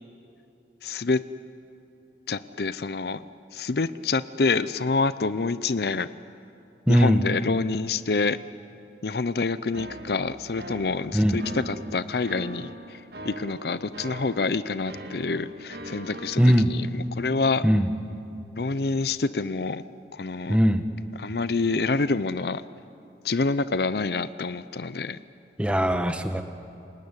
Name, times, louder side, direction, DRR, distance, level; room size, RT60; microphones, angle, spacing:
voice 1, 0.8-1.2 2.3-3.2 3.5-6.1 6.9-8.4 9.0-13.0 13.2-17.6 18.6-19.8 20.1-20.6 21.2-22.6 23.2-25.2, left 3 dB, 65° left, 15 dB, 0.6 m, -27 dB
voice 2, 6.9-7.2 11.1-11.4 16.4-16.7 17.6-17.9 20.5-20.8 25.6-26.4, equal, 5° right, 8 dB, 1.1 m, -20 dB
sound 1, 9.7-16.6, right 1 dB, 60° right, 2.1 m, -41 dB
28.0 x 19.0 x 9.8 m, 2.7 s
head